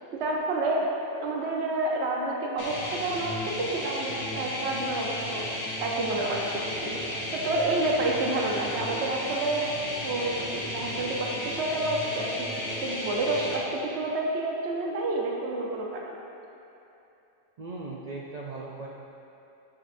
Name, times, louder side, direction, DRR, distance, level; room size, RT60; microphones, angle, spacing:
voice 1, 0.1-0.9 1.2-5.4 5.8-7.0 7.3-9.7 10.0-16.1, right 2 dB, 60° right, -1 dB, 1.0 m, -29 dB
sound 1, 2.6-13.6, left 1 dB, 80° left, 1.5 m, -34 dB
voice 2, 17.6-18.9, right 3 dB, 80° right, -3 dB, 0.3 m, -38 dB
11.0 x 5.3 x 2.6 m, 2.9 s
omnidirectional pair, 1.4 m